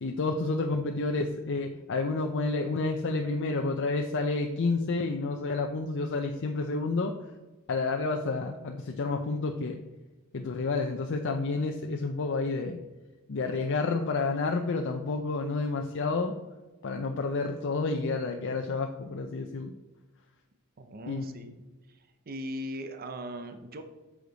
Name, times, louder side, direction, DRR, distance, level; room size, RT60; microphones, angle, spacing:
voice 1, 0.0-7.1 7.7-9.8 10.3-12.8 13.3-16.3 16.8-19.7 21.1-21.4, left 3 dB, 55° left, 4 dB, 0.6 m, -30 dB
voice 2, 20.8-21.6 21.9-23.8, equal, 45° right, 7 dB, 0.7 m, -39 dB
8.2 x 6.4 x 4.0 m, 1.2 s
head